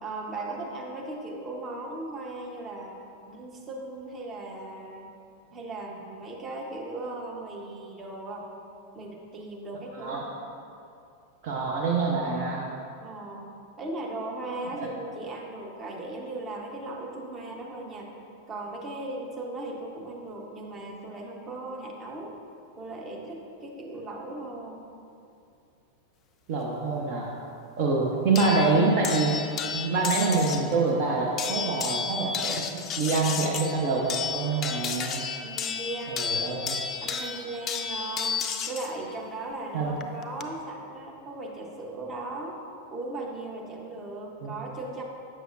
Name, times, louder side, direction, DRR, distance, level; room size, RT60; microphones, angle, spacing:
voice 1, 0.0-3.0 3.3-5.1 5.5-8.5 8.9-10.3 13.0-13.5 13.8-18.1 18.5-22.4 22.8-24.9 35.4-36.6 37.0-42.6 42.9-45.0, right 2 dB, 25° right, 0 dB, 0.9 m, -37 dB
voice 2, 9.9-10.2 11.4-12.7 14.8-14.9 26.5-27.3 27.8-29.4 29.7-35.2 36.1-36.8 39.7-39.9 44.4-44.5, right 3 dB, 45° right, -2 dB, 0.6 m, -26 dB
sound 1, 28.4-30.7 31.4-38.9 40.0-40.4, left 6 dB, 30° left, 0.4 m, -32 dB
7.4 x 6.4 x 2.6 m, 2.6 s
figure-of-eight pair, 90°, 0 cm